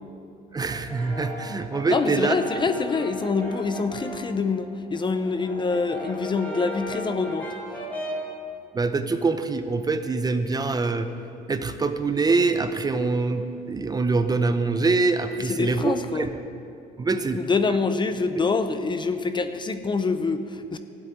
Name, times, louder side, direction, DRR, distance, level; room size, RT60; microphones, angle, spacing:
voice 1, 0.5-2.4 8.7-11.1 11.5-16.3 17.0-17.4 18.4-18.5, right 3 dB, 25° right, 9 dB, 0.7 m, -24 dB
Brass instrument, 0.7-4.4 4.7-8.4, equal, 10° left, 2.5 m, -36 dB
voice 2, 1.9-7.5 15.4-16.3 17.1-20.8, left 4 dB, 25° left, 9 dB, 0.7 m, -26 dB
13.0 x 8.1 x 9.2 m, 2.5 s
cardioid pair, 110°, 17 cm